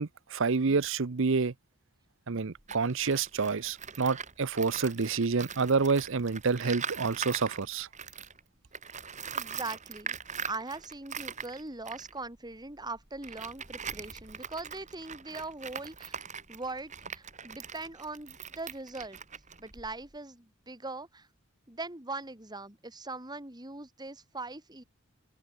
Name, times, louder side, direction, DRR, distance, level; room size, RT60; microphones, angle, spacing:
voice 1, 0.0-1.5 2.3-7.9, right 4 dB, 65° right, 0.7 m, -28 dB
Tools, 2.6-8.4 8.7-20.2, right 6 dB, 35° right, 4.2 m, -42 dB
voice 2, 9.3-10.1 10.4-16.1 16.5-19.2 19.6-21.3 21.7-24.8, right 3 dB, 20° right, 2.9 m, -41 dB
head